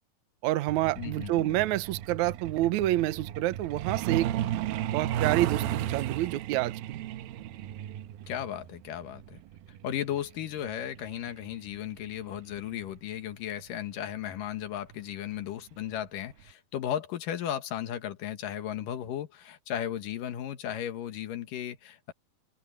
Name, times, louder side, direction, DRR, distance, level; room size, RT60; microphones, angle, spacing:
voice 1, 0.4-4.3 4.9-7.0, right 15 dB, 70° right, 1.9 m, -28 dB
Truck, 0.7-13.0 14.2-14.4 14.8-15.0 15.3-15.6 15.9-16.0 16.5-16.6, right 11 dB, 90° right, 2.7 m, -35 dB
voice 2, 1.0-1.6 8.3-9.4 9.8-22.1, left 10 dB, 70° left, 3.0 m, -35 dB
open air
omnidirectional pair, 4.1 m